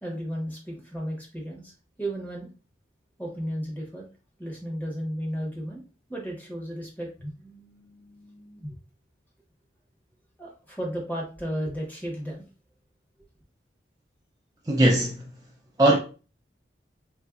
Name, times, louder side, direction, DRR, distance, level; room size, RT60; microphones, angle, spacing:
voice 1, 0.0-2.5 3.2-4.0 4.4-5.8 6.1-8.8 10.4-12.4, equal, 10° left, 0.9 m, -34 dB
voice 2, 14.7-15.2 15.8-16.0, right 1 dB, 20° right, 0.4 m, -19 dB
3.8 x 2.5 x 2.4 m
head